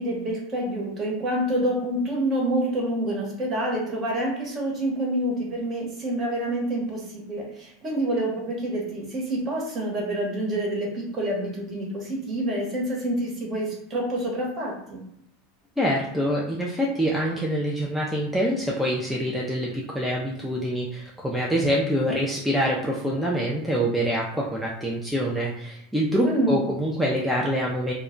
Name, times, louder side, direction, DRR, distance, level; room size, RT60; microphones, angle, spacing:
voice 1, 0.0-15.0 26.2-26.6, right 1 dB, 35° right, -1 dB, 1.0 m, -27 dB
voice 2, 15.8-27.9, equal, 5° right, -4 dB, 0.4 m, -25 dB
2.2 x 2.1 x 3.7 m, 0.77 s
supercardioid pair, 130°, 0 cm